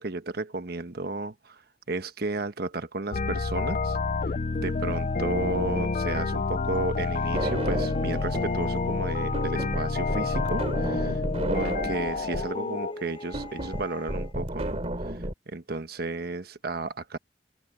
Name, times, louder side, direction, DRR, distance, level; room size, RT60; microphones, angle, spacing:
voice 1, 0.0-1.6 1.9-4.0 4.2-4.3 4.6-11.2 11.5-14.8 15.5-17.2, right 2 dB, 60° right, 1.2 m, -33 dB
sound 1, 3.1-12.9, left 3 dB, 45° left, 0.6 m, -28 dB
sound 2, 3.9-14.3, left 2 dB, 30° left, 6.6 m, -44 dB
sound 3, 7.3-8.6 8.9-15.3, right 1 dB, 40° right, 2.9 m, -32 dB
head